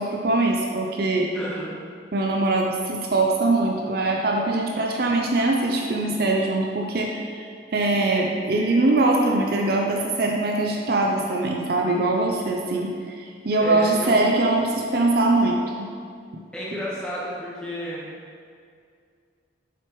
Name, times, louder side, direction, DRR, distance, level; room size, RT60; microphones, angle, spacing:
voice 1, 0.0-1.4 2.1-15.9 16.3-16.4, right 2 dB, 55° right, 1 dB, 0.5 m, -22 dB
voice 2, 1.3-1.7 13.6-14.2 16.5-18.1, equal, 5° left, -9 dB, 1.7 m, -31 dB
6.8 x 6.0 x 3.1 m, 2.2 s
head